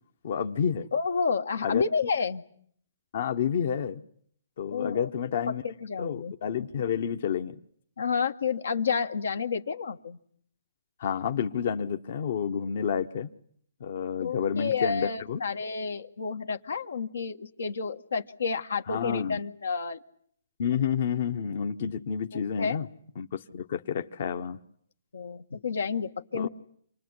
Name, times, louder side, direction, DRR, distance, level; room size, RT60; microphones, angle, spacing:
voice 1, 0.2-0.9 1.6-1.8 3.1-4.0 4.6-5.6 6.0-7.5 11.0-13.3 13.8-15.4 18.9-19.4 20.6-22.9 23.2-24.6 26.3-26.5, left 7 dB, 55° left, 6 dB, 1.2 m, -29 dB
voice 2, 0.9-2.4 4.7-5.1 5.5-6.3 8.0-10.2 14.2-20.0 22.3-22.8 25.1-26.5, left 5 dB, 85° left, 7 dB, 1.7 m, -30 dB
28.0 x 20.5 x 9.7 m, 0.63 s
hypercardioid pair, 150°, 0 cm